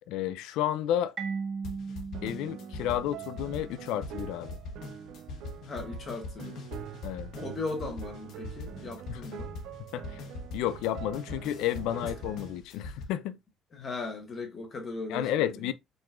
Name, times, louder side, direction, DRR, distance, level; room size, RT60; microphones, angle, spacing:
voice 1, 0.1-1.1 2.2-4.6 7.0-7.3 9.1-9.2 9.9-10.2 10.5-13.4 15.1-15.7, left 11 dB, 90° left, 0.4 m, -31 dB
Marimba xylophone, 1.2-3.8, right 5 dB, 30° right, 0.7 m, -38 dB
sound 1, 1.6-13.0, left 2 dB, 60° left, 1.0 m, -42 dB
sound 2, 2.1-12.6, right 10 dB, 75° right, 0.4 m, -45 dB
voice 2, 5.6-6.7 7.4-9.5 12.0-12.1 12.8-12.9 13.7-15.7, left 3 dB, 30° left, 0.9 m, -38 dB
4.8 x 3.7 x 2.4 m
cardioid pair, 155°, 0 cm